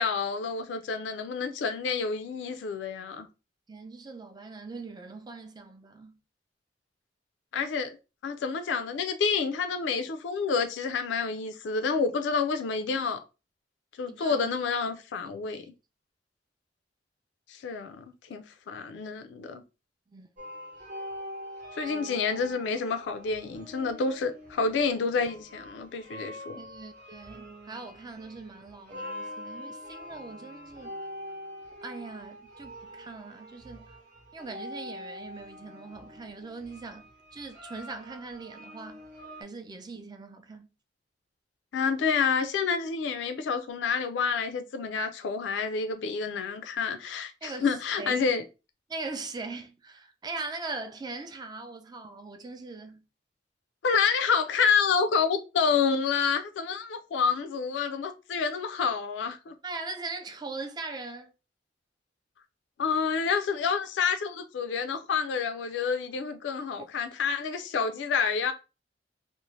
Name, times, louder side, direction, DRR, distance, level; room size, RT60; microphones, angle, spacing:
voice 1, 0.0-3.3 7.5-8.0 8.2-13.2 14.0-15.6 17.5-18.0 18.3-19.6 21.7-26.6 41.7-48.4 53.8-59.5 62.8-68.5, left 5 dB, 80° left, 0.3 m, -28 dB
voice 2, 3.7-6.2 14.1-14.5 15.5-15.7 20.1-20.3 26.6-31.0 31.8-33.9 34.3-39.0 39.4-40.7 47.4-48.3 48.9-53.0 59.6-61.3 66.8-66.9, right 3 dB, 25° right, 0.4 m, -41 dB
sound 1, 20.4-39.4, equal, 45° right, 0.8 m, -44 dB
2.6 x 2.0 x 3.0 m
head